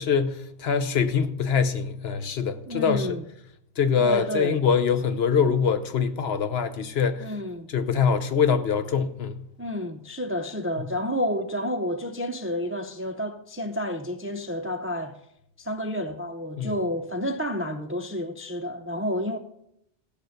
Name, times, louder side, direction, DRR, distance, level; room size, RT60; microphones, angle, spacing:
voice 1, 0.0-3.1 3.8-7.3 7.7-9.4 16.6-16.7, left 6 dB, 65° left, 1.0 m, -24 dB
voice 2, 2.7-3.2 4.0-4.6 7.2-7.7 9.6-15.2 15.6-19.4, equal, 20° right, 0.4 m, -30 dB
15.5 x 6.9 x 6.5 m
omnidirectional pair, 1.2 m